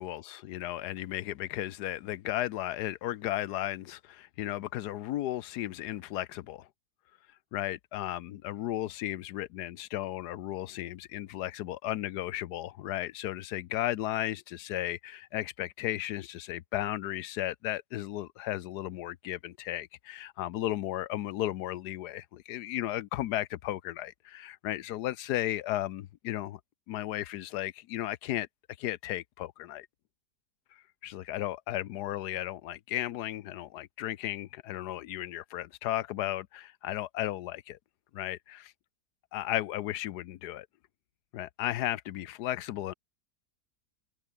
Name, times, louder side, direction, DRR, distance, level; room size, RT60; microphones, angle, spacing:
voice 1, 0.0-6.7 7.5-26.6 26.9-28.5 28.8-29.9 31.0-37.8 38.1-38.7 39.3-40.7 41.3-42.9, left 14 dB, 85° left, 1.3 m, -35 dB
open air
omnidirectional pair, 1.7 m